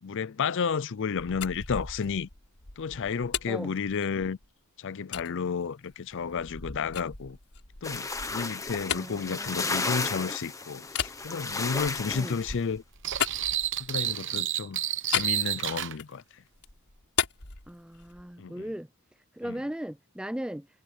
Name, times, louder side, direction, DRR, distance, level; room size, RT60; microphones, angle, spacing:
voice 1, 0.0-2.3 2.8-4.4 4.8-7.4 7.8-12.8 13.8-14.8 15.1-16.4 18.4-18.7 19.4-19.6, left 5 dB, 55° left, 0.5 m, -32 dB
sound 1, 1.1-4.5 5.1-5.3 5.9-10.3 10.9-14.1 15.1-16.2 16.5-18.3, left 8 dB, 85° left, 3.7 m, -36 dB
sound 2, 7.8-12.5, left 3 dB, 15° left, 1.2 m, -33 dB
voice 2, 8.9-9.7 12.1-12.4 17.7-18.9 19.4-20.7, equal, 5° right, 0.4 m, -37 dB
sound 3, 13.0-15.9, right 11 dB, 55° right, 0.9 m, -30 dB
head